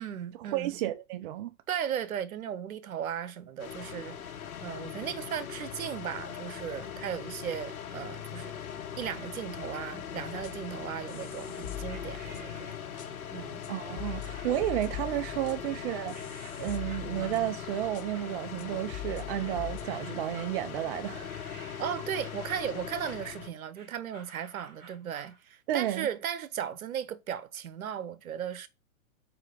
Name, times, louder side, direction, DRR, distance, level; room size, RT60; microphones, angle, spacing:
voice 1, 0.0-0.7 1.7-4.2 4.6-8.5 9.0-12.7 13.3-13.6 21.8-28.7, right 9 dB, 80° right, 1.2 m, -36 dB
voice 2, 0.5-1.5 13.7-16.2 16.6-21.3 25.7-26.1, right 13 dB, 40° right, 0.6 m, -32 dB
sound 1, 3.6-23.5, left 8 dB, 85° left, 1.4 m, -40 dB
sound 2, 10.4-10.7 11.1-12.6 13.0-13.1 13.6-13.7 14.0-17.6 17.9-18.0 18.6-18.7 18.9-19.8, left 12 dB, 40° left, 0.9 m, -42 dB
sound 3, 11.9-13.2 14.0-14.8 15.2-15.8 16.1-25.4, right 4 dB, 20° right, 2.3 m, -53 dB
4.9 x 4.7 x 5.0 m
hypercardioid pair, 135°, 42 cm